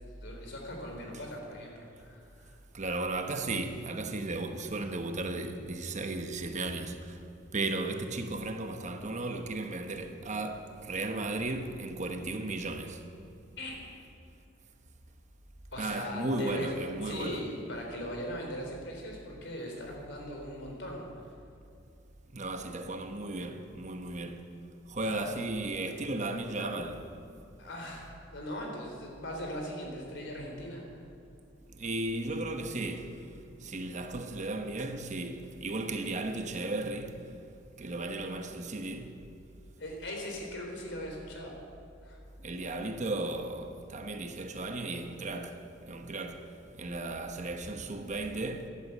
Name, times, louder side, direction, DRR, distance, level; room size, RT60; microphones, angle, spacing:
voice 1, 0.0-2.6 13.6-13.8 15.7-16.7 17.0-21.3 25.0-25.3 27.6-31.0 39.8-41.6 42.0-42.2, left 1 dB, 65° left, 3.9 m, -40 dB
voice 2, 2.7-7.2 7.5-13.0 15.8-17.4 22.3-24.5 24.9-27.2 31.7-33.3 33.6-37.3 37.8-39.2 42.4-48.7, right 2 dB, 40° right, 1.1 m, -35 dB
14.5 x 11.5 x 8.3 m
head